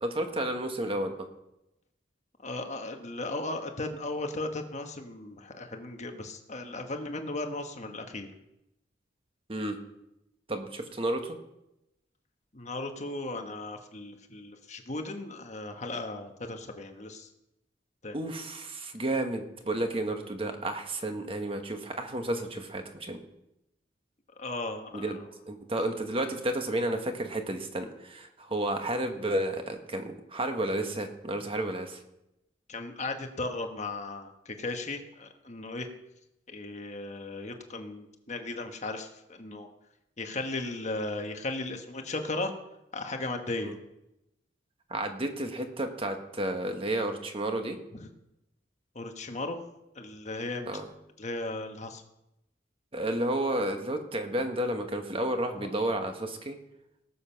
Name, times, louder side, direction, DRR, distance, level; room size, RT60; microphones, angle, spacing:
voice 1, 0.0-1.3 9.5-9.8 10.5-11.4 18.1-23.2 24.9-25.2 25.5-32.0 43.6-43.8 44.9-47.8 50.7-50.9 52.9-56.6, right 1 dB, 30° right, 5 dB, 1.3 m, -31 dB
voice 2, 2.4-8.3 12.5-17.3 18.0-18.2 24.4-25.1 32.7-35.9 36.5-39.7 40.2-42.5 42.9-43.7 47.9-48.1 48.9-49.6 49.9-50.8 51.2-52.0 55.6-55.7, left 2 dB, 40° left, 5 dB, 1.3 m, -36 dB
18.5 x 7.2 x 5.8 m, 0.88 s
head